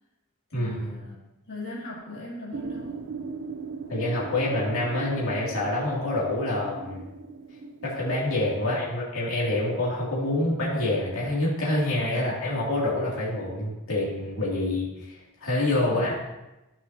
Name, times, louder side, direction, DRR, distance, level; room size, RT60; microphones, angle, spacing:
voice 1, 0.5-1.2 1.5-3.1 8.6-8.7 15.9-16.1, left 2 dB, 50° left, -6 dB, 2.2 m, -40 dB
sound 1, 2.5-8.7, right 4 dB, 55° right, 0.5 m, -39 dB
voice 2, 3.9-7.0 7.8-16.1, left 1 dB, 70° left, -5 dB, 2.4 m, -27 dB
14.0 x 5.7 x 2.7 m, 0.99 s
head